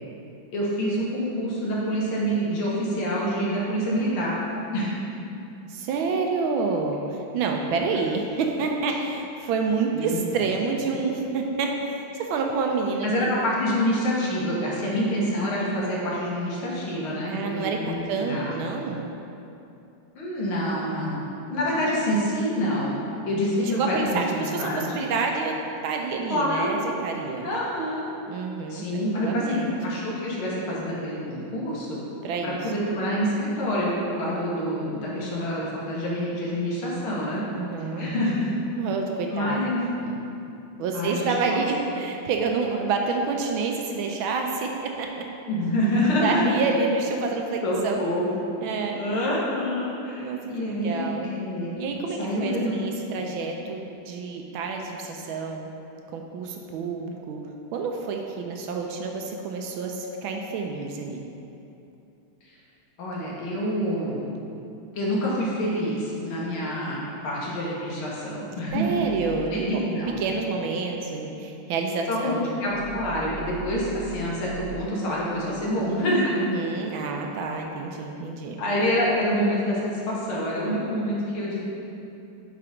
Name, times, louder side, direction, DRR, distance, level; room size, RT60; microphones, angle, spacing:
voice 1, 0.5-4.3 4.7-4.9 9.9-10.2 13.0-18.5 20.2-21.2 21.5-22.9 23.3-25.0 26.3-26.7 27.4-28.1 28.7-32.0 32.4-37.5 37.8-38.5 39.3-40.1 40.9-41.3 45.5-46.4 47.6-48.4 49.0-51.7 52.2-52.7 53.2-53.3 63.0-64.2 64.9-68.9 69.5-70.2 72.1-76.3 78.6-81.6, equal, 75° left, -5 dB, 2.1 m, -27 dB
voice 2, 5.7-13.3 13.7-13.8 17.3-19.1 23.8-25.6 25.8-27.5 28.3-29.7 32.2-32.6 37.5-38.1 38.8-39.6 40.8-45.2 46.2-48.0 48.6-49.0 50.2-51.3 51.8-55.7 56.1-57.4 57.7-61.2 68.7-69.7 70.2-72.6 76.4-78.6, right 4 dB, 75° right, 2 dB, 1.3 m, -28 dB
sound 1, 68.7-69.2 72.7-74.8, right 7 dB, 55° left, 1.9 m, -40 dB
7.6 x 3.8 x 5.0 m, 2.8 s
omnidirectional pair, 2.4 m